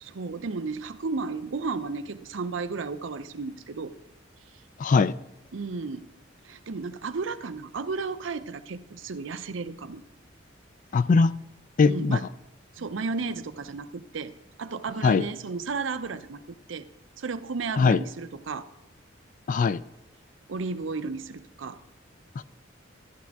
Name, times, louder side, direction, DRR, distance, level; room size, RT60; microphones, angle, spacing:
voice 1, 0.0-3.9 5.5-6.1 6.4-10.0 11.9-12.3 12.7-14.3 14.6-16.9 17.2-18.7 20.5-21.8, right 4 dB, 70° right, 0.6 m, -33 dB
voice 2, 4.8-5.1 10.9-11.3 11.8-12.2 15.0-15.2 17.8-18.0 19.5-19.8 22.4-22.5, left 4 dB, 40° left, 0.3 m, -20 dB
14.0 x 10.5 x 3.5 m
head